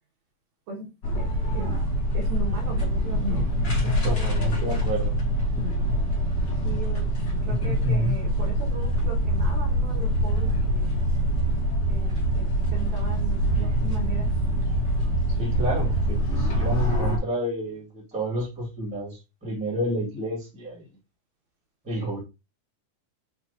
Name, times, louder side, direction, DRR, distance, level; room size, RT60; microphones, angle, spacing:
sound 1, 1.0-17.2, equal, 45° left, 1.6 m, -24 dB
voice 1, 1.2-1.8 2.1-3.5 3.8-4.8 6.6-7.1 7.4-10.9 11.9-14.3, right 2 dB, 70° right, 1 dB, 2.2 m, -39 dB
voice 2, 4.0-5.1 15.4-20.8 21.8-22.2, right 1 dB, 5° right, -3 dB, 1.2 m, -30 dB
5.9 x 3.0 x 2.7 m, 0.26 s
omnidirectional pair, 3.7 m